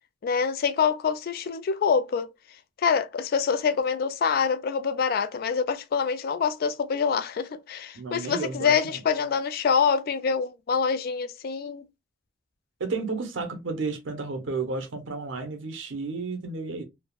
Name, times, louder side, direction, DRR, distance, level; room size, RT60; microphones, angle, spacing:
voice 1, 0.2-2.3 2.8-11.8, left 6 dB, 50° left, 0.3 m, -25 dB
voice 2, 7.9-9.0 12.8-16.8, right 4 dB, 75° right, 0.7 m, -32 dB
3.3 x 2.1 x 2.3 m
head